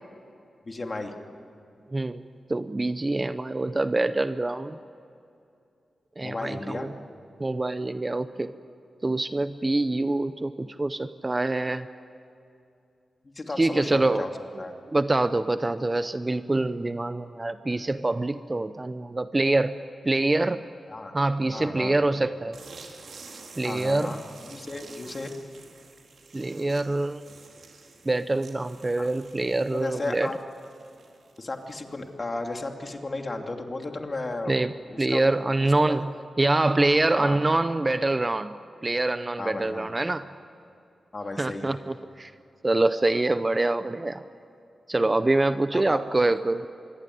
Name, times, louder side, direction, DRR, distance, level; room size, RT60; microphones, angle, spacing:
voice 1, 0.7-1.1 6.2-6.9 13.4-14.3 14.6-14.7 20.9-21.1 21.5-22.1 23.6-24.2 24.5-25.3 29.0-29.1 29.7-30.4 31.4-34.6 34.9-35.3 35.6-36.0 37.1-37.4 39.4-39.9 41.1-41.8 45.7-46.0, left 2 dB, 30° left, 3 dB, 2.6 m, -34 dB
voice 2, 1.9-4.8 6.2-6.9 7.4-8.5 9.0-11.9 13.6-14.6 14.9-19.8 20.0-20.6 21.1-22.6 23.6-24.1 26.3-27.2 28.0-30.3 34.5-34.7 35.0-36.1 36.4-38.6 38.8-40.3 41.4-42.3 42.6-44.2 44.9-46.7, right 2 dB, 20° right, 11 dB, 0.7 m, -25 dB
sound 1, 22.5-32.0, right 4 dB, 70° right, 4.4 m, -49 dB
26.0 x 22.5 x 9.3 m, 2.6 s
wide cardioid pair, 120°, 0 cm